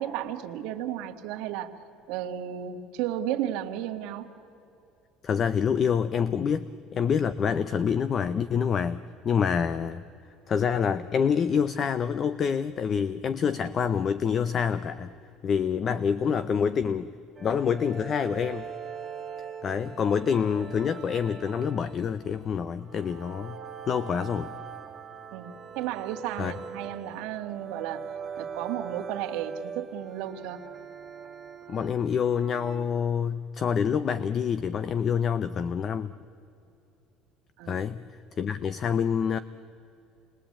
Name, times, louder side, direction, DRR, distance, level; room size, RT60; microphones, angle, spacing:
voice 1, 0.0-1.8 2.1-4.3 25.3-28.0 28.4-30.6 37.6-37.8, right 11 dB, 65° right, 4 dB, 1.8 m, -33 dB
voice 2, 5.2-10.0 10.5-15.1 15.4-17.1 17.4-18.7 19.6-23.6 23.9-24.5 26.4-26.5 31.7-36.1 37.7-38.0 38.4-39.4, left 7 dB, 25° left, 15 dB, 0.5 m, -27 dB
sound 1, 17.4-32.8, right 6 dB, 15° right, 1.5 m, -42 dB
28.5 x 21.0 x 8.6 m, 2.7 s
cardioid pair, 180°, 0 cm